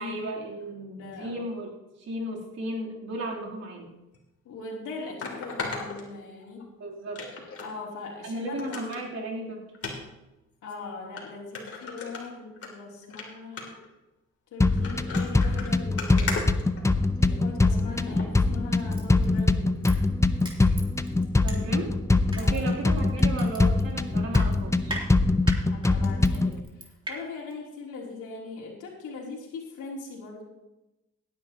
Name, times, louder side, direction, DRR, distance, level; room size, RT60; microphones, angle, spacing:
voice 1, 0.0-3.9 6.8-7.3 8.2-9.6 21.4-21.9 22.3-25.0, right 2 dB, 60° right, -3 dB, 3.4 m, -35 dB
voice 2, 0.9-1.5 4.4-6.7 7.6-9.1 10.6-13.8 14.5-16.4 17.2-19.7 22.4-22.8 25.7-30.4, left 4 dB, 80° left, -1 dB, 3.3 m, -40 dB
sound 1, 4.1-4.2 5.2-6.6 7.1-7.7 8.1-8.2 8.6-9.0 9.7-9.9 10.7-10.8 11.2-11.3 11.5-12.7 13.0-13.2 13.6-13.9 14.6-17.3 18.1-18.3 18.8-18.9, left 4 dB, 50° left, 3.0 m, -36 dB
sound 2, 14.6-26.6, left 2 dB, 10° left, 0.6 m, -23 dB
Crushing, 18.9-21.9 22.3-27.1 27.5-27.6, right 2 dB, 15° right, 3.0 m, -39 dB
17.0 x 10.5 x 3.0 m, 0.98 s
cardioid pair, 90°, 30 cm